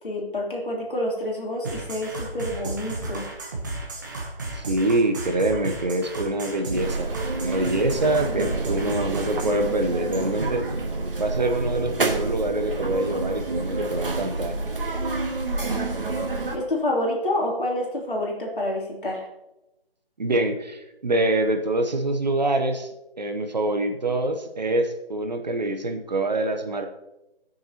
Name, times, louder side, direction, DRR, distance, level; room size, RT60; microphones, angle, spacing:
voice 1, 0.0-3.3 16.5-19.3, left 1 dB, 60° left, -2 dB, 3.1 m, -28 dB
sound 1, 1.6-9.6, right 2 dB, 20° right, 1.0 m, -34 dB
voice 2, 4.5-7.1 7.4-10.6 11.2-14.6 20.2-22.9 23.2-26.9, right 2 dB, 45° right, 6 dB, 0.9 m, -25 dB
sound 2, 6.7-16.6, right 3 dB, 60° right, 1.8 m, -28 dB
19.5 x 6.7 x 2.9 m, 0.94 s
figure-of-eight pair, 165°, 31 cm